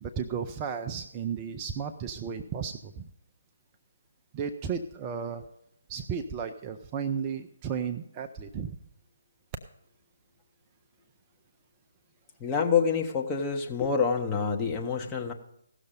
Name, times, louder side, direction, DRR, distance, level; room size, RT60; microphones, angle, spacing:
voice 1, 0.0-3.1 4.3-5.4 5.9-8.8, right 7 dB, 20° right, 5 dB, 0.5 m, -34 dB
voice 2, 12.4-15.3, left 6 dB, 15° left, 1 dB, 1.0 m, -27 dB
16.0 x 6.5 x 5.3 m, 0.76 s
figure-of-eight pair, 140°, 0 cm